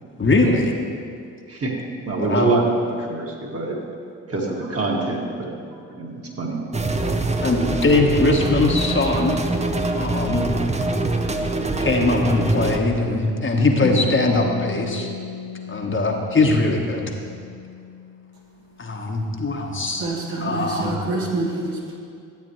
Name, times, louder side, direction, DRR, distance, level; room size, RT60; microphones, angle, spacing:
voice 1, 0.2-0.7 2.2-2.5 7.4-9.4 9.9-10.4 11.8-15.1 15.7-17.1 18.8-20.0 20.4-21.0, left 2 dB, 30° left, 1 dB, 1.2 m, -21 dB
voice 2, 2.1-3.8 4.3-6.6, right 2 dB, 35° right, -2 dB, 2.0 m, -25 dB
sound 1, 6.7-12.8, right 2 dB, 15° right, 0.8 m, -24 dB
Bass guitar, 13.8-18.5 18.8-20.1, left 5 dB, 50° left, 0.9 m, -35 dB
voice 3, 20.0-22.0, right 2 dB, 65° right, -3 dB, 2.0 m, -27 dB
12.5 x 8.4 x 3.1 m, 2.3 s
hypercardioid pair, 50°, 39 cm